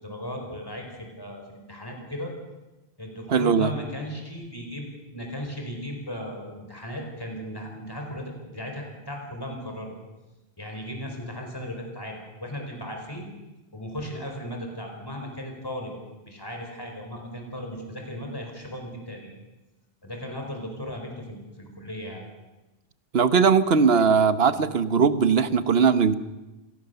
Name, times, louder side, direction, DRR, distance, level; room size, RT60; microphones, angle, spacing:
voice 1, 0.0-2.3 3.0-4.8 5.1-9.9 10.6-13.3 13.7-15.9 16.2-19.3 20.0-22.2, equal, 20° left, 2 dB, 4.7 m, -36 dB
voice 2, 3.3-3.7 23.1-26.1, right 6 dB, 75° right, 13 dB, 1.3 m, -20 dB
26.5 x 18.0 x 6.9 m, 1.1 s
omnidirectional pair, 1.0 m